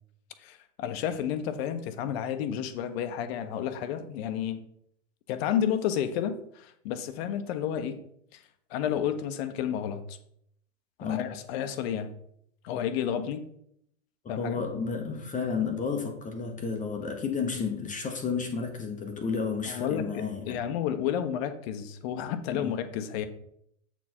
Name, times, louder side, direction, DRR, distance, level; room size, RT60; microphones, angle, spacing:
voice 1, 0.4-4.6 5.3-8.0 8.3-8.4 8.7-10.2 11.0-12.1 12.6-13.4 14.3-14.6 19.7-23.3, left 9 dB, 50° left, 9 dB, 1.0 m, -31 dB
voice 2, 11.0-11.4 14.2-20.6 22.5-22.8, left 5 dB, 20° left, 4 dB, 0.9 m, -32 dB
8.0 x 4.5 x 4.4 m, 0.72 s
hypercardioid pair, 100°, 39 cm